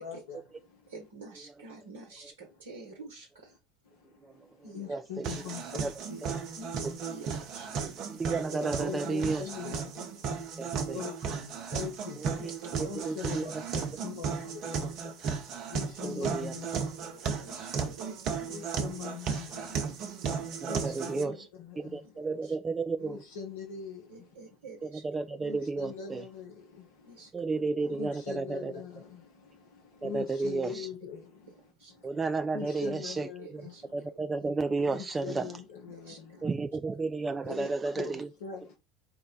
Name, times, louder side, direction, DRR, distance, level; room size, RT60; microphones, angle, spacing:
voice 1, 0.0-0.9 1.7-1.8 2.4-2.6 3.8-6.8 7.7-8.0 8.3-12.5 12.8-17.6 17.9-18.0 18.4-20.2 20.4-22.2 23.0-24.8 25.4-27.3 27.9-32.3 32.5-34.1 34.8-36.5 37.4-38.7, left 7 dB, 75° left, 0.8 m, -44 dB
voice 2, 0.9-3.6 4.6-4.9 6.6-8.0 9.7-9.8 10.7-11.1 12.4-12.8 14.0-14.1 14.7-14.9 16.1-16.2 16.5-18.6 20.0-21.4 22.1-22.6 24.1-25.1 27.0-28.0 30.7-30.8 31.8-32.0 33.0-33.1 33.4-34.1 34.4-34.5 35.4-35.5 35.9-36.2, right 3 dB, 80° right, 0.9 m, -49 dB
sound 1, 5.2-21.2, right 6 dB, 50° right, 0.9 m, -35 dB
voice 3, 8.1-9.4 10.6-11.0 13.1-13.4 16.0-16.5 20.6-21.3 21.9-23.2 25.0-26.2 27.3-28.6 30.0-30.7 32.0-33.1 33.9-35.4 36.4-38.1, right 3 dB, 20° right, 0.3 m, -32 dB
4.5 x 2.2 x 3.8 m
hypercardioid pair, 75°, 0 cm